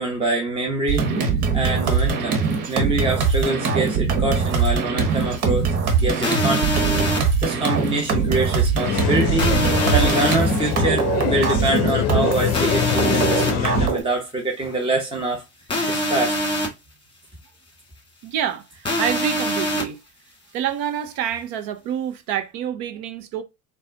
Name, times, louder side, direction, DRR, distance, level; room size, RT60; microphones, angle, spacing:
voice 1, 0.0-5.7 6.0-9.5 9.9-15.4 15.9-16.3, right 2 dB, 10° right, 0.8 m, -25 dB
sound 1, 0.9-12.6 13.0-14.0, right 5 dB, 65° right, 1.3 m, -22 dB
sound 2, 6.2-7.2 9.4-10.4 12.5-13.5 15.7-16.7 18.8-19.8, equal, 10° left, 1.6 m, -23 dB
sound 3, 8.8-13.9, left 10 dB, 35° left, 0.6 m, -24 dB
voice 2, 18.2-20.0 20.5-23.4, right 9 dB, 50° right, 0.6 m, -27 dB
4.1 x 2.2 x 3.8 m
hypercardioid pair, 75°, 48 cm